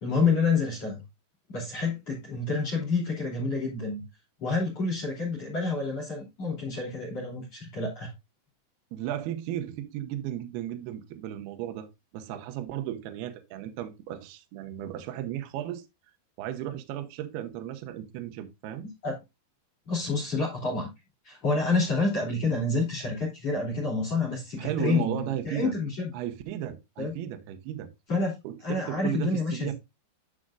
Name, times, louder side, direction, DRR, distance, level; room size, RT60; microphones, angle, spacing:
voice 1, 0.0-1.0 1.5-4.0 4.4-8.1 19.0-19.2 19.9-20.9 21.3-26.1 27.0-27.1 28.1-28.3 28.6-29.7, left 3 dB, 35° left, 3.4 m, -28 dB
voice 2, 8.9-11.9 12.1-15.8 16.4-18.9 24.6-25.7 26.1-27.9 28.4-29.7, right 11 dB, 75° right, 2.5 m, -35 dB
10.0 x 6.4 x 2.4 m
omnidirectional pair, 5.4 m